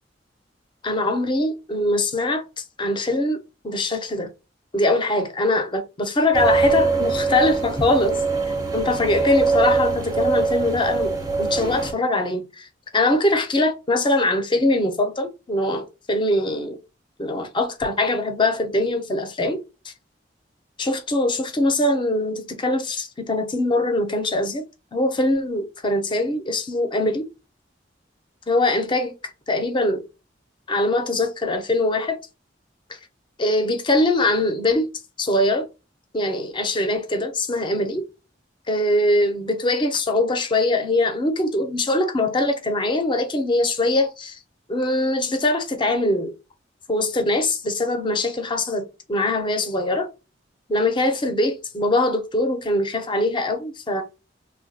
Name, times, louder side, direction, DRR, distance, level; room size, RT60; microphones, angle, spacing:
voice 1, 0.8-4.3 4.7-8.2 8.7-12.7 12.9-16.8 17.2-19.9 20.8-24.6 24.9-27.3 28.5-30.0 30.7-32.2 32.9-33.0 33.4-34.9 35.2-35.7 36.1-38.0 38.7-44.4 44.7-46.3 46.9-50.1 50.7-54.0, left 2 dB, 25° left, 0.5 m, -22 dB
sound 1, 6.3-11.9, right 4 dB, 20° right, 0.5 m, -22 dB
3.2 x 2.2 x 2.6 m
head